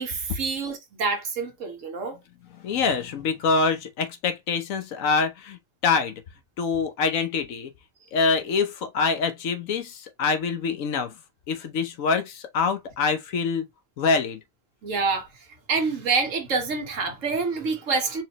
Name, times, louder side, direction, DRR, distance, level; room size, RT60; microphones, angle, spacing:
voice 1, 0.0-2.2 14.8-15.3 15.7-18.2, right 4 dB, 70° right, 1.6 m, -27 dB
voice 2, 2.5-6.2 6.6-7.7 8.1-11.1 11.5-13.7 14.0-14.4, left 4 dB, 75° left, 1.2 m, -25 dB
4.8 x 3.1 x 3.0 m
omnidirectional pair, 1.4 m